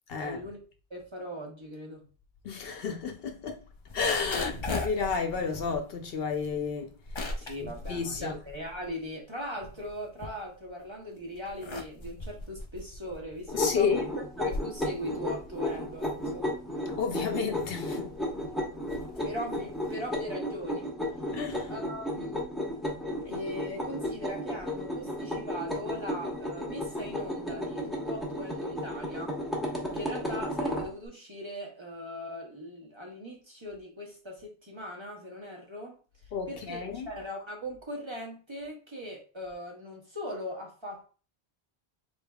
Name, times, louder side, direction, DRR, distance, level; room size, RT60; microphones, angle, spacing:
voice 1, 0.2-0.6 0.9-2.1 7.4-14.1 14.4-16.6 19.2-20.9 21.7-22.5 23.2-29.4 29.9-36.0 36.5-41.1, equal, 30° right, 0.9 m, -40 dB
voice 2, 2.4-3.7 3.9-6.9 7.6-8.3 13.5-14.0 17.0-18.1 21.3-21.7 36.3-37.1, left 5 dB, 65° left, 0.8 m, -31 dB
sound 1, 3.7-9.0 9.4-10.8 11.3-20.1, left 2 dB, 40° left, 0.5 m, -39 dB
sound 2, 13.5-30.9, left 1 dB, ahead, 0.9 m, -34 dB
4.0 x 3.5 x 2.3 m
omnidirectional pair, 1.1 m